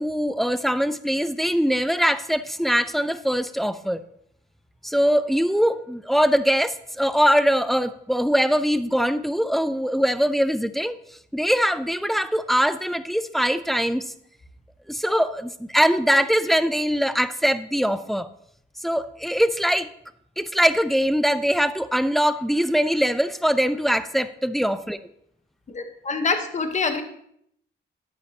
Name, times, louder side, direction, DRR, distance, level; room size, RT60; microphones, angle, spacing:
voice 1, 0.0-4.0 4.8-10.9 11.3-14.1 14.9-18.3 18.8-19.9 20.4-25.0, equal, ahead, 13 dB, 0.4 m, -22 dB
voice 2, 25.7-27.0, left 4 dB, 40° left, 7 dB, 1.2 m, -25 dB
9.5 x 8.8 x 2.9 m, 0.71 s
cardioid pair, 85°, 19 cm